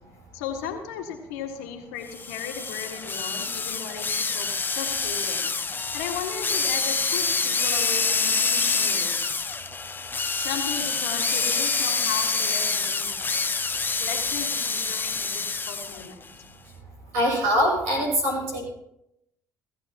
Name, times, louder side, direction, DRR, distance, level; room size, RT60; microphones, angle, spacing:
voice 1, 0.3-9.1 10.3-13.1 14.0-16.2, left 7 dB, 85° left, 4 dB, 1.8 m, -36 dB
sound 1, 2.1-16.1, left 4 dB, 25° left, 0.8 m, -26 dB
voice 2, 17.1-18.6, equal, 85° right, -1 dB, 6.5 m, -23 dB
18.0 x 13.5 x 2.9 m, 0.82 s
hypercardioid pair, 65°, 8 cm